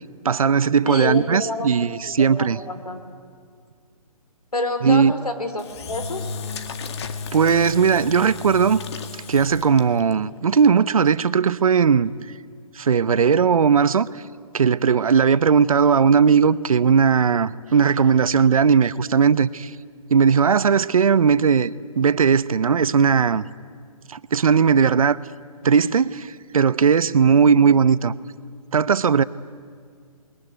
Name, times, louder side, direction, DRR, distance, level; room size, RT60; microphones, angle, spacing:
voice 1, 0.2-2.6 4.8-5.1 7.3-8.8 9.3-12.1 12.8-14.1 14.5-19.7 20.1-23.5 24.1-25.2 25.6-28.1 28.7-29.2, right 6 dB, 65° right, 0.8 m, -18 dB
voice 2, 0.8-1.9 2.2-3.0 4.5-6.3, left 2 dB, 90° left, 3.8 m, -28 dB
Engine / Drill, 5.6-10.1, left 5 dB, 45° left, 1.9 m, -34 dB
27.5 x 21.5 x 9.4 m
figure-of-eight pair, 140°, 19 cm